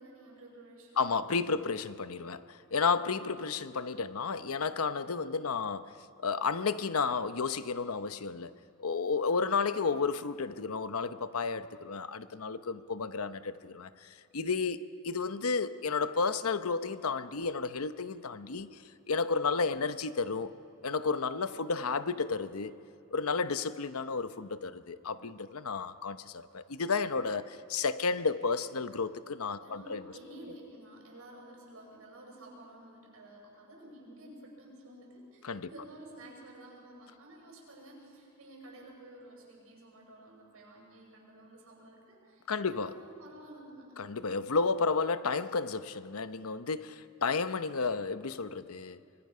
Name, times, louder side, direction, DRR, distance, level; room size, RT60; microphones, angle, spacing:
voice 1, 0.0-1.7 21.5-21.9 29.6-44.0, right 1 dB, 75° right, -1 dB, 6.4 m, -52 dB
voice 2, 1.0-5.9 6.2-8.5 8.8-18.7 19.1-20.5 20.8-22.7 23.1-30.0 35.4-35.7 42.5-42.9 44.0-49.0, left 4 dB, 85° left, 12 dB, 0.8 m, -32 dB
24.5 x 22.5 x 5.6 m, 2.4 s
head